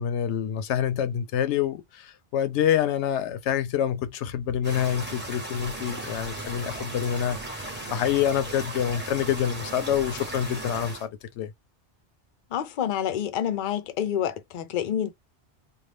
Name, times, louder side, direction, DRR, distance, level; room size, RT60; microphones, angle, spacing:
voice 1, 0.0-11.1 11.4-11.5, left 9 dB, 85° left, 0.9 m, -27 dB
sound 1, 4.6-11.1, right 1 dB, 10° right, 1.0 m, -36 dB
voice 2, 12.5-15.1, left 10 dB, 55° left, 0.6 m, -28 dB
2.6 x 2.3 x 3.3 m
omnidirectional pair, 1.1 m